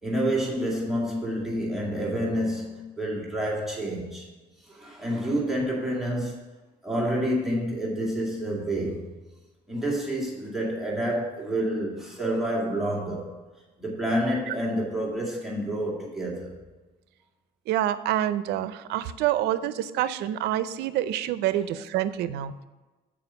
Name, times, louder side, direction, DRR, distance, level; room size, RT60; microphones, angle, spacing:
voice 1, 0.0-4.3 4.6-6.4 6.8-9.1 9.7-13.3 13.8-16.6, right 1 dB, ahead, 2.2 m, -28 dB
voice 2, 17.7-22.5, right 12 dB, 80° right, 0.5 m, -27 dB
7.0 x 5.0 x 6.8 m
cardioid pair, 110°, 17 cm